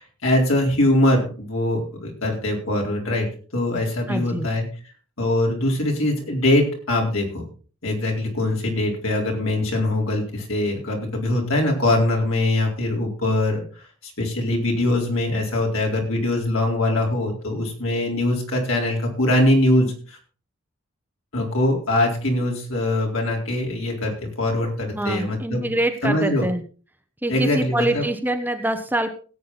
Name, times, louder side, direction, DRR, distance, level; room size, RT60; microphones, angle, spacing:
voice 1, 0.0-4.6 5.2-7.4 7.8-13.6 14.0-20.2 21.3-25.7 26.0-26.5 27.3-28.0, left 1 dB, 70° left, 0 dB, 4.0 m, -22 dB
voice 2, 4.1-4.5 24.9-26.6 27.2-29.1, right 1 dB, 10° right, 6 dB, 0.8 m, -25 dB
17.0 x 8.4 x 4.1 m, 0.38 s
head